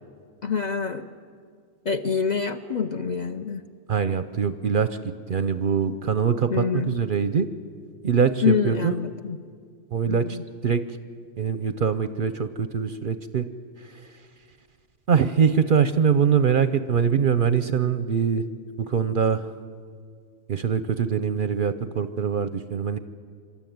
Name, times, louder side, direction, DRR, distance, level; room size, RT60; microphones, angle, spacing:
voice 1, 0.4-1.1 1.8-3.7 6.5-6.9 8.4-9.4 10.1-10.4, left 6 dB, 45° left, 6 dB, 0.7 m, -26 dB
voice 2, 3.9-5.0 5.3-7.5 8.0-9.0 9.9-10.8 11.4-13.5 13.8-14.1 15.1-18.4 18.9-19.5 20.5-23.0, right 7 dB, 50° right, 11 dB, 0.7 m, -23 dB
26.5 x 13.0 x 9.3 m, 2.1 s
omnidirectional pair, 1.3 m